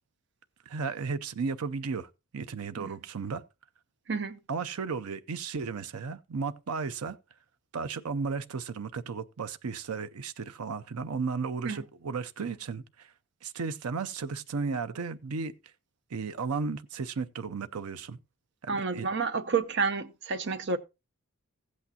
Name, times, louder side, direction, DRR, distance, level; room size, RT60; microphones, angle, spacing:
voice 1, 0.7-3.4 4.5-7.2 7.7-13.1 13.4-15.5 16.1-18.2 18.7-19.1, right 5 dB, 85° right, 0.5 m, -34 dB
voice 2, 4.1-4.4 11.6-11.8 18.7-20.8, right 4 dB, 55° right, 0.8 m, -30 dB
15.0 x 8.4 x 2.8 m
head